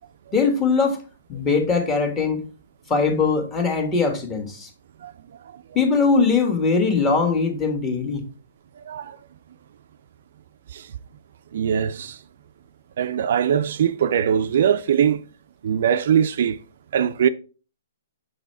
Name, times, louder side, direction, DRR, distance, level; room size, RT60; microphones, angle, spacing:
voice 1, 0.3-1.0 1.3-2.5 2.9-4.7 5.7-8.2, left 4 dB, 20° left, 1.6 m, -21 dB
voice 2, 8.8-9.2 10.7-10.9 11.5-12.2 13.0-15.2 15.6-16.6 16.9-17.3, right 8 dB, 60° right, 0.4 m, -21 dB
6.5 x 4.0 x 4.3 m
hypercardioid pair, 130°, 0 cm